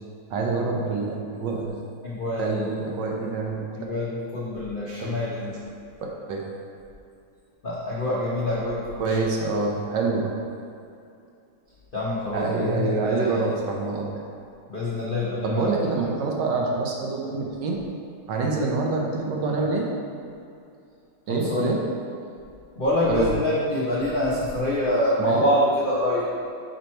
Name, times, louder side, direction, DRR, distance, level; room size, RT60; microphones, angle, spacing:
voice 1, 0.3-1.7 2.4-3.7 5.0-5.1 6.3-6.4 9.0-10.3 12.3-14.1 15.4-17.8 18.3-19.9 21.3-21.8 23.1-23.3 25.2-25.4, right 3 dB, 70° right, -1 dB, 1.3 m, -26 dB
voice 2, 2.0-2.7 3.7-5.5 7.6-9.2 11.9-13.4 14.7-15.7 21.3-21.7 22.8-26.3, left 1 dB, 65° left, -8 dB, 0.5 m, -26 dB
5.3 x 4.5 x 4.4 m, 2.5 s
omnidirectional pair, 2.3 m